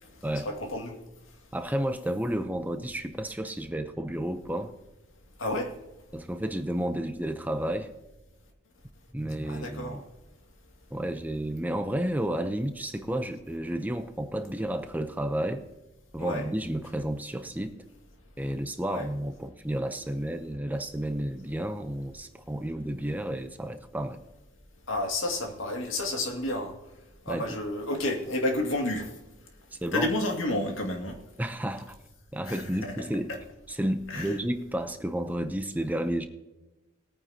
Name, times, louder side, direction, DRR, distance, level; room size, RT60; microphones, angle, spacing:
voice 1, 0.4-1.0 5.4-5.7 9.5-10.0 16.2-16.5 18.9-19.1 24.9-26.8 27.3-29.1 29.9-31.2 32.5-33.4 34.1-34.4, left 1 dB, 75° left, 3 dB, 2.3 m, -31 dB
voice 2, 1.5-4.7 6.1-7.9 9.1-10.0 10.9-15.6 16.1-17.8 18.4-24.2 27.3-27.6 29.8-30.1 31.4-32.0 32.3-33.3 33.7-36.3, right 1 dB, 10° right, 8 dB, 0.7 m, -31 dB
20.5 x 9.3 x 2.9 m, 1.0 s
head